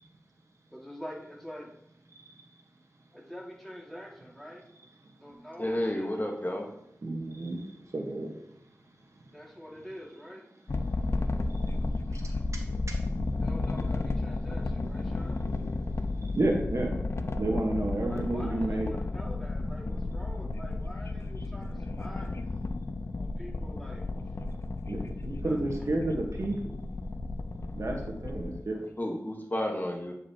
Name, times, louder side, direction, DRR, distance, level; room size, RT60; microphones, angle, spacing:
voice 1, 0.7-1.7 3.1-4.6 5.2-6.1 9.3-10.4 13.4-15.4 18.1-22.3 23.2-24.1 25.4-25.6, equal, 5° left, -3 dB, 2.0 m, -45 dB
voice 2, 5.6-6.7 29.0-30.1, left 1 dB, 35° left, 2 dB, 1.2 m, -31 dB
voice 3, 7.0-8.3 11.7-11.8 12.1-12.2 16.3-17.0 17.4-18.9 24.9-26.7 27.7-28.8, right 2 dB, 70° right, 1 dB, 1.1 m, -31 dB
sound 1, 10.7-28.6, left 2 dB, 60° left, 0.5 m, -33 dB
8.9 x 5.0 x 2.8 m, 0.77 s
cardioid pair, 45°, 5 cm